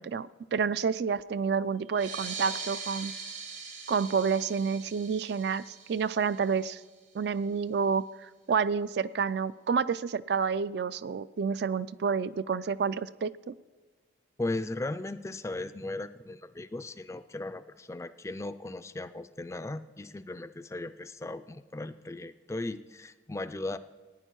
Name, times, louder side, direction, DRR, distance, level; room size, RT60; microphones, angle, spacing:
voice 1, 0.0-3.1 3.9-5.6 5.9-6.8 7.1-8.1 8.5-13.6, right 6 dB, 60° right, 15 dB, 0.3 m, -29 dB
sound 1, 1.9-7.0, right 5 dB, 90° right, 2.7 m, -41 dB
voice 2, 14.4-23.8, left 2 dB, 15° left, 12 dB, 0.3 m, -37 dB
15.5 x 9.7 x 4.6 m, 1.3 s
head